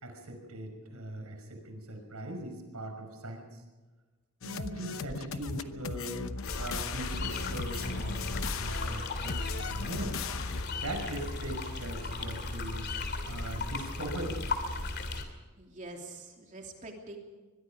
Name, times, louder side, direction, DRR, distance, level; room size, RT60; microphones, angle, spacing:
voice 1, 0.0-3.6 4.4-6.3 6.6-10.2 10.7-12.9 13.3-14.4, right 1 dB, 80° right, 4 dB, 5.7 m, -40 dB
sound 1, 4.4-10.7, left 5 dB, 60° left, 0.9 m, -38 dB
sound 2, 6.5-15.2, left 2 dB, 45° left, 3.0 m, -36 dB
voice 2, 15.6-17.2, right 2 dB, 35° right, 1 dB, 2.9 m, -45 dB
23.5 x 22.0 x 5.1 m, 1.3 s
head